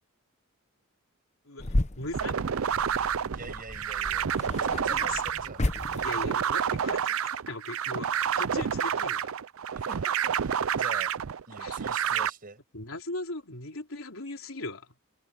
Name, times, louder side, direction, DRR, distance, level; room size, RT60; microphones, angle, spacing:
voice 1, 1.5-2.4 5.0-5.1 5.9-7.2 7.5-9.3 11.6-11.8 12.7-14.9, left 2 dB, 70° left, 3.9 m, -38 dB
sound 1, 1.6-6.5, left 1 dB, 35° left, 1.0 m, -34 dB
sound 2, 2.1-12.3, right 8 dB, 75° right, 0.5 m, -29 dB
voice 2, 3.3-5.7 9.7-11.1 11.5-12.6, right 3 dB, 45° right, 6.2 m, -44 dB
head